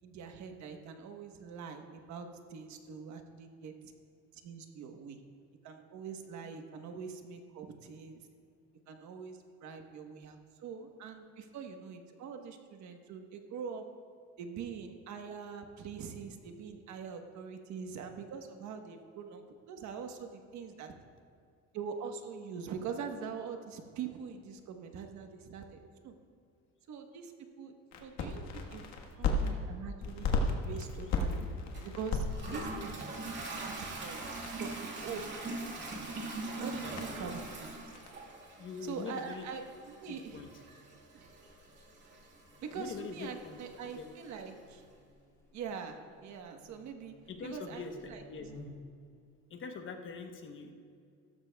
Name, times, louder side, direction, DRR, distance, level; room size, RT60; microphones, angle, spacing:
voice 1, 0.0-3.9 4.3-5.2 5.6-8.3 8.9-13.8 14.4-20.9 21.7-26.1 26.9-27.3 27.6-28.8 29.2-31.5 31.8-33.0 33.6-34.2 34.6-35.3 36.6-37.7 38.8-40.4 41.1-41.3 42.6-44.8 45.5-47.1 47.4-48.6, right 6 dB, 65° right, 5 dB, 1.2 m, -43 dB
sound 1, 27.9-29.5 30.0-38.1, left 3 dB, 60° left, 1.4 m, -37 dB
Toilet flush, 31.7-44.5, right 2 dB, 35° right, 2.0 m, -43 dB
voice 2, 32.5-32.9 36.7-37.4 38.6-39.5 40.1-40.5 42.7-44.1 47.3-48.5 49.5-50.7, left 5 dB, 40° left, 5 dB, 1.0 m, -44 dB
Buzz, 41.4-49.0, left 2 dB, 10° left, 2.7 m, -57 dB
16.0 x 13.5 x 2.3 m, 2.3 s
cardioid pair, 145°, 31 cm